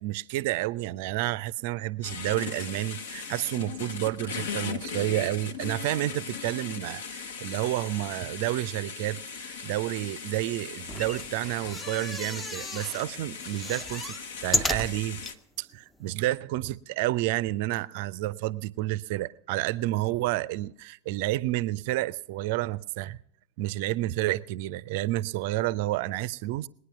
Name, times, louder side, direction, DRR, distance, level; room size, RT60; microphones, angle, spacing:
voice 1, 0.0-15.2 15.6-23.2 23.6-26.7, right 17 dB, 50° right, 0.5 m, -30 dB
sound 1, 2.0-15.3, left 6 dB, 60° left, 1.1 m, -38 dB
sound 2, 10.8-13.1 13.4-15.4 15.9-16.0 16.2-16.3, left 1 dB, 10° left, 0.6 m, -33 dB
21.0 x 9.7 x 5.9 m
figure-of-eight pair, 90°, 0 cm